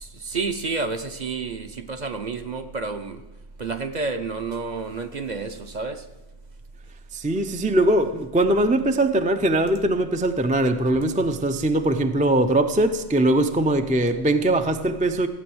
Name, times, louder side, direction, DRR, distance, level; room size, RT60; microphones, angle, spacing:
voice 1, 0.0-3.2 3.6-6.1 10.9-11.0, right 4 dB, 40° right, 7 dB, 0.9 m, -30 dB
voice 2, 7.1-15.3, right 1 dB, 10° right, 7 dB, 0.4 m, -21 dB
15.5 x 8.7 x 7.9 m, 1.1 s
omnidirectional pair, 1.2 m